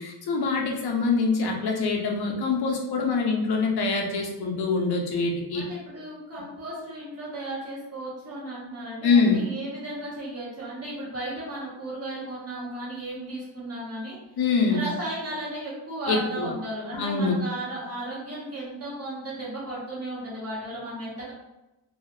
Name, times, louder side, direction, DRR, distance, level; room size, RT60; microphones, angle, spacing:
voice 1, 0.0-5.6 9.0-9.4 14.4-14.8 16.1-16.5 16.9-17.4, left 4 dB, 55° left, 0 dB, 0.6 m, -24 dB
voice 2, 5.5-14.2 14.7-21.3, right 1 dB, 35° right, -8 dB, 1.0 m, -35 dB
2.3 x 2.0 x 2.9 m, 0.99 s
wide cardioid pair, 165°, 46 cm